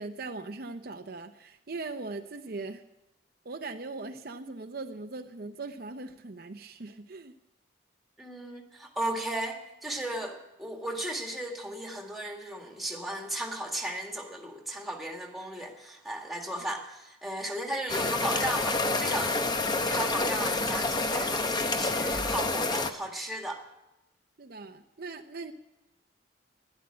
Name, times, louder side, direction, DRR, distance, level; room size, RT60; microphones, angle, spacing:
voice 1, 0.0-2.8 3.4-7.3 24.4-25.5, right 3 dB, 55° right, 6 dB, 0.7 m, -40 dB
voice 2, 8.2-19.4 19.8-23.6, right 1 dB, ahead, 1 dB, 1.9 m, -35 dB
sound 1, 17.9-22.9, left 2 dB, 25° left, 0.8 m, -28 dB
12.5 x 11.0 x 9.8 m, 0.96 s
head